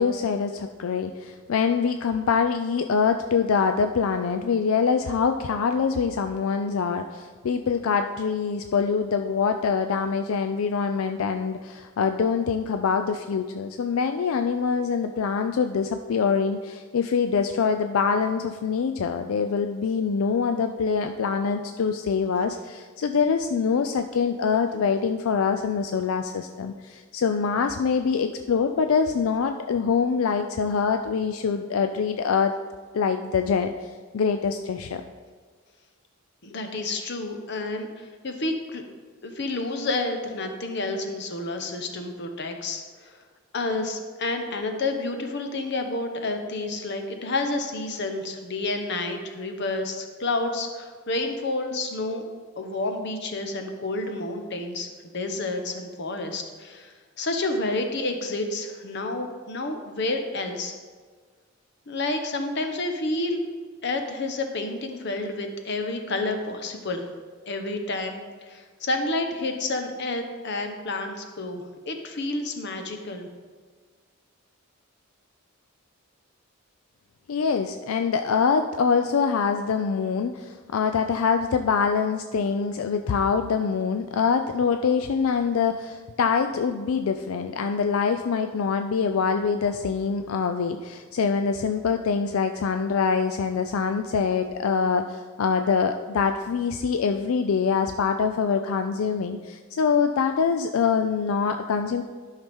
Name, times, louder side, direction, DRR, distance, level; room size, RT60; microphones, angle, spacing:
voice 1, 0.0-32.5 32.9-33.7 34.1-35.0 77.3-102.0, left 5 dB, 85° left, 7 dB, 0.4 m, -24 dB
voice 2, 36.4-38.8 39.2-43.2 43.5-52.2 52.6-60.7 61.9-63.4 63.8-67.0 67.5-73.3, left 2 dB, 55° left, 5 dB, 0.9 m, -30 dB
12.0 x 5.7 x 3.5 m, 1.5 s
head